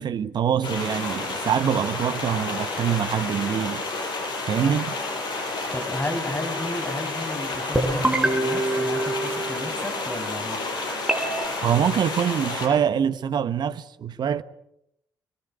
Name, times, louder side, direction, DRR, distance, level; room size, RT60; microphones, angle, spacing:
voice 1, 0.0-3.8 4.5-5.0 11.6-14.4, right 8 dB, 55° right, 1.2 m, -24 dB
sound 1, 0.6-12.7, left 3 dB, 60° left, 7.4 m, -30 dB
voice 2, 5.7-10.6, left 1 dB, 20° left, 6.3 m, -33 dB
sound 2, 7.7-9.9 11.1-11.5, right 1 dB, 10° right, 6.2 m, -25 dB
25.5 x 22.0 x 8.1 m
hypercardioid pair, 40°, 9 cm